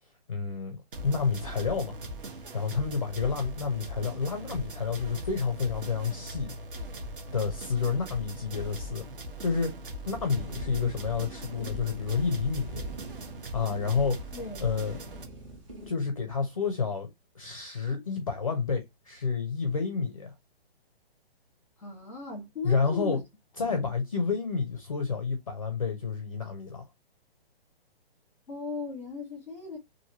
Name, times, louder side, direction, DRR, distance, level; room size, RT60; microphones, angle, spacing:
voice 1, 0.3-0.8 1.0-2.0 2.5-6.5 7.3-9.1 9.4-9.7 10.1-12.8 13.5-14.3 14.6-15.0 15.9-17.1 17.4-20.3 22.6-23.2 23.6-26.8, left 5 dB, 35° left, 0.4 m, -29 dB
sound 1, 0.9-15.2, equal, 55° right, 1.0 m, -40 dB
sound 2, 10.1-15.9, right 1 dB, 30° right, 1.0 m, -45 dB
voice 2, 14.3-14.7 21.8-23.2 23.6-23.9 28.5-29.8, left 4 dB, 5° left, 0.9 m, -38 dB
2.8 x 2.5 x 2.7 m
hypercardioid pair, 180°, 31 cm